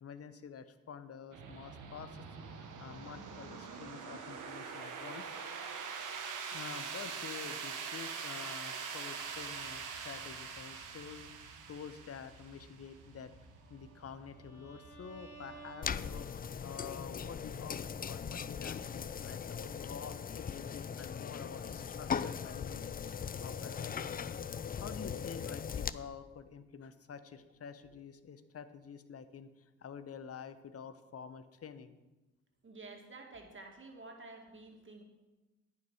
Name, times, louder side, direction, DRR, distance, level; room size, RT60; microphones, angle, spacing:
voice 1, 0.0-2.2 2.6-5.3 6.5-13.3 13.7-24.2 24.7-32.0, left 7 dB, 45° left, 12 dB, 1.0 m, -48 dB
sound 1, 1.3-19.9, right 6 dB, 65° right, 1.5 m, -45 dB
Bowed string instrument, 13.5-16.6, right 3 dB, 80° left, 4.3 m, -55 dB
sound 2, 15.8-25.9, left 7 dB, 25° left, 0.4 m, -39 dB
voice 2, 32.6-35.0, right 3 dB, 35° right, 2 dB, 2.4 m, -50 dB
10.5 x 8.9 x 5.0 m, 1.1 s
hypercardioid pair, 50°, 34 cm